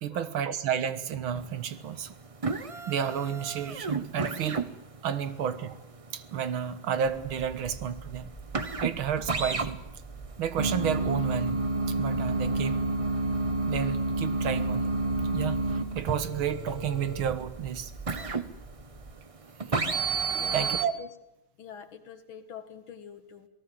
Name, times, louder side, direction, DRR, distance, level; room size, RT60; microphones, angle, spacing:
voice 1, 0.0-2.1 2.9-4.7 5.0-5.8 6.1-8.3 8.8-9.8 10.4-12.9 13.7-14.9 15.3-17.9 18.2-18.4 19.7-19.8 20.5-20.9, right 8 dB, 75° right, 12 dB, 2.1 m, -31 dB
sound 1, 1.3-1.8 2.1-19.2 19.6-20.8, right 3 dB, 40° right, 0.5 m, -30 dB
sound 2, 7.0-19.1, right 3 dB, ahead, 1.7 m, -45 dB
voice 2, 20.3-21.1 21.6-23.5, left 7 dB, 70° left, 9 dB, 2.3 m, -45 dB
27.5 x 18.5 x 7.7 m, 0.89 s
omnidirectional pair, 2.3 m